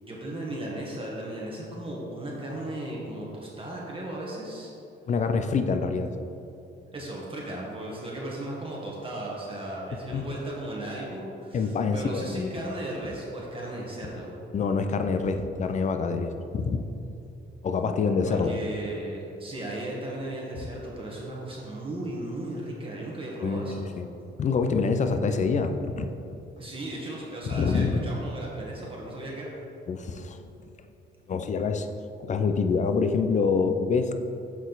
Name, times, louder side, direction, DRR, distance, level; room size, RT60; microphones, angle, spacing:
voice 1, 0.0-4.7 6.9-14.4 18.2-23.9 26.6-29.5, right 1 dB, 25° right, -4 dB, 1.2 m, -36 dB
voice 2, 5.1-6.2 10.1-10.3 11.5-12.5 14.5-16.8 17.6-18.6 23.4-23.7 24.0-24.1 24.4-26.1 27.5-28.0 29.9-30.4 31.3-31.9 32.2-34.1, left 5 dB, 35° left, 8 dB, 0.5 m, -26 dB
7.1 x 4.1 x 3.9 m, 2.8 s
cardioid pair, 90°, 20 cm